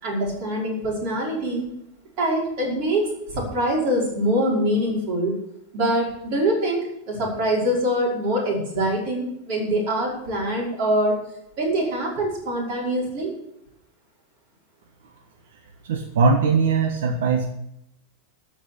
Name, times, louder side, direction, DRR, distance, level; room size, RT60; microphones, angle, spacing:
voice 1, 0.0-1.7 2.2-5.3 5.7-11.2 11.6-13.3, right 1 dB, 40° right, -3 dB, 5.3 m, -24 dB
voice 2, 15.9-17.5, right 4 dB, 75° right, 4 dB, 1.4 m, -20 dB
13.0 x 6.1 x 8.3 m, 0.79 s
supercardioid pair, 180°, 0 cm